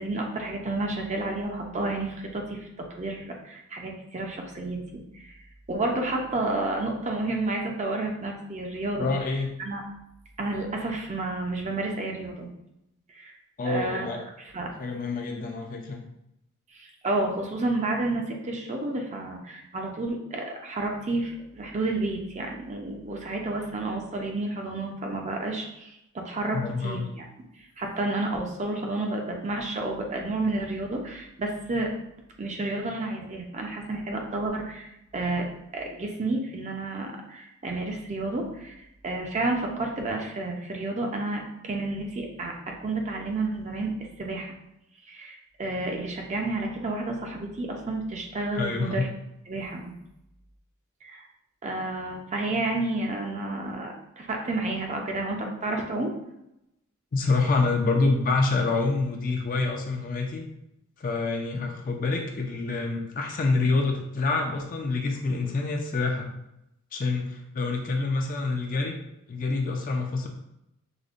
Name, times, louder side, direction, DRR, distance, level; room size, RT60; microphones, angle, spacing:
voice 1, 0.0-5.4 5.7-9.1 9.6-9.8 10.4-12.5 13.1-13.3 13.6-14.1 14.4-14.7 16.7-27.3 27.8-31.9 32.4-35.5 35.7-38.7 39.0-44.5 45.0-49.1 49.5-49.9 51.0-51.2 51.6-56.1, right 2 dB, 30° right, 1 dB, 0.5 m, -31 dB
voice 2, 9.0-9.5 13.6-14.2 14.8-16.0 26.5-27.1 48.5-49.1 57.1-60.4 61.0-66.3 66.9-69.0 69.3-70.3, left 3 dB, 40° left, 2 dB, 0.4 m, -27 dB
4.9 x 2.1 x 2.4 m, 0.83 s
head